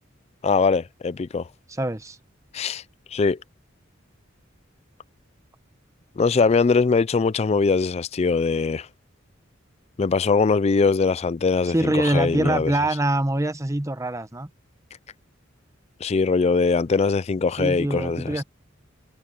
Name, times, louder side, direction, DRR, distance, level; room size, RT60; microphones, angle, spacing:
voice 1, 0.4-1.5 2.5-2.8 3.1-3.4 6.2-8.9 10.0-12.7 16.0-18.4, left 4 dB, 30° left, 0.4 m, -21 dB
voice 2, 1.7-2.2 11.7-14.5 17.6-18.4, right 1 dB, 15° right, 1.0 m, -24 dB
head